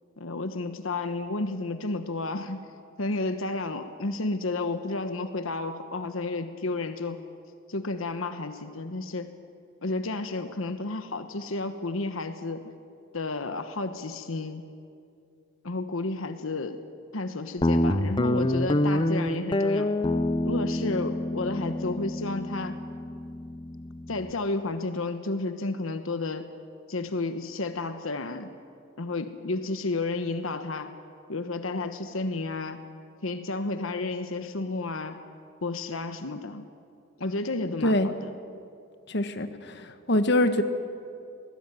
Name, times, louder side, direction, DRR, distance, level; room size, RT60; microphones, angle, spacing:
voice 1, 0.2-2.6 3.0-7.2 7.7-9.3 9.8-12.7 13.1-14.6 15.6-16.8 17.1-20.0 20.4-22.8 24.1-26.5 26.9-28.5 29.0-31.0 31.3-32.8 33.2-35.2 35.6-36.7 37.2-38.3, left 2 dB, 80° left, 9 dB, 1.2 m, -31 dB
Guitar, 17.6-24.3, left 1 dB, 25° left, 0.7 m, -27 dB
voice 2, 39.1-40.6, left 1 dB, 55° left, 8 dB, 1.4 m, -24 dB
24.0 x 19.0 x 9.2 m, 2.4 s
head